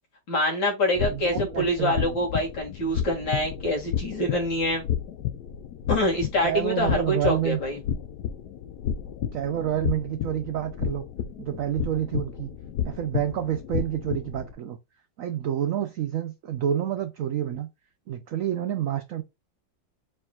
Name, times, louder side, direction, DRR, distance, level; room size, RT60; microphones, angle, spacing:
voice 1, 0.3-4.9 5.9-7.8, left 1 dB, 85° left, 2.6 m, -25 dB
sound 1, 0.9-14.5, left 9 dB, 65° left, 1.1 m, -32 dB
voice 2, 1.1-2.2 6.4-7.6 9.3-11.0 11.4-12.5 12.8-14.8 15.2-17.7 18.1-19.2, right 10 dB, 90° right, 0.7 m, -28 dB
4.7 x 4.4 x 2.3 m
omnidirectional pair, 2.0 m